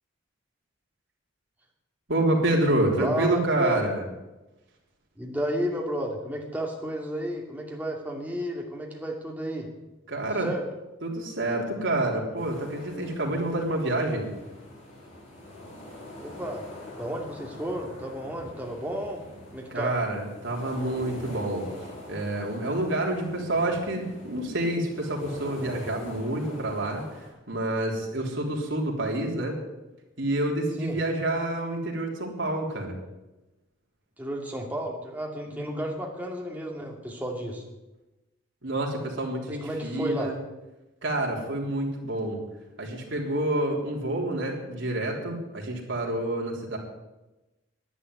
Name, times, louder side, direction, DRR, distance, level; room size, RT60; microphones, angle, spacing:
voice 1, 2.1-4.1 10.1-10.5 11.0-14.3 19.7-21.7 22.1-29.6 30.2-33.0 35.5-35.9 38.6-40.3 41.0-42.4 42.8-46.8, right 1 dB, 75° right, -1 dB, 3.5 m, -28 dB
voice 2, 3.0-3.9 5.2-9.7 10.2-10.6 16.2-16.6 17.0-19.2 19.5-20.0 30.8-31.0 34.2-37.6 39.5-40.3, equal, 10° right, 0 dB, 2.4 m, -32 dB
sound 1, 12.4-27.3, left 1 dB, 35° left, 6.6 m, -44 dB
11.0 x 9.5 x 9.8 m, 1.0 s
head